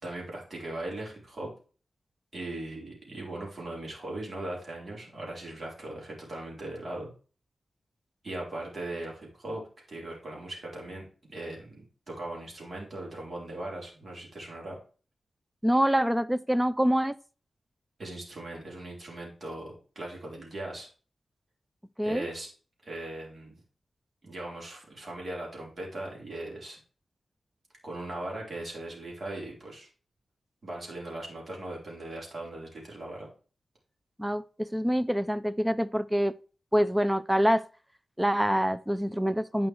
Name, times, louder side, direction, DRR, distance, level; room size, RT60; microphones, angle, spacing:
voice 1, 0.0-1.5 2.3-7.1 8.2-9.6 9.9-14.8 18.0-20.9 22.0-22.5 22.8-23.6 24.2-26.8 27.8-29.9 30.6-33.3, right 1 dB, 45° right, 4.0 m, -39 dB
voice 2, 15.6-17.1 22.0-22.3 34.2-36.3 36.7-37.6 38.2-39.7, equal, 5° right, 0.4 m, -25 dB
9.4 x 5.1 x 4.6 m
wide cardioid pair, 115°, 0 cm